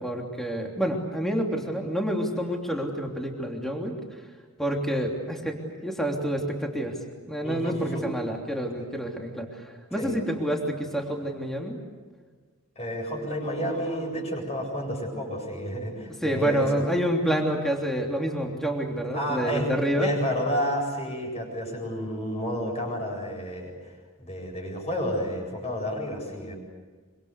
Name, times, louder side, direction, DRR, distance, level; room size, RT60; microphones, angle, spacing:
voice 1, 0.0-3.9 4.6-7.0 7.3-11.8 16.2-20.1, right 1 dB, ahead, 0 dB, 3.3 m, -28 dB
voice 2, 7.4-8.1 10.0-10.2 12.8-16.8 19.1-19.7 20.0-23.9 24.2-26.5, equal, 30° left, 1 dB, 7.8 m, -30 dB
26.0 x 25.5 x 8.3 m, 1.4 s
head